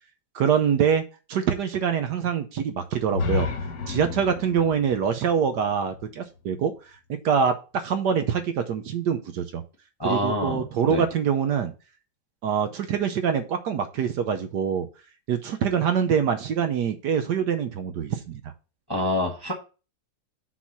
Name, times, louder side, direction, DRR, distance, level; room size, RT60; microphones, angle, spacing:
voice 1, 0.3-1.0 1.3-3.5 3.9-6.7 7.2-9.6 10.0-11.7 12.4-14.9 15.3-18.5, right 7 dB, 65° right, 8 dB, 1.2 m, -24 dB
sound 1, 3.1-7.0, left 5 dB, 55° left, 1.3 m, -32 dB
voice 2, 10.0-11.0 18.9-19.5, left 1 dB, 20° left, 1 dB, 0.8 m, -27 dB
6.1 x 4.0 x 5.8 m, 0.32 s
omnidirectional pair, 2.1 m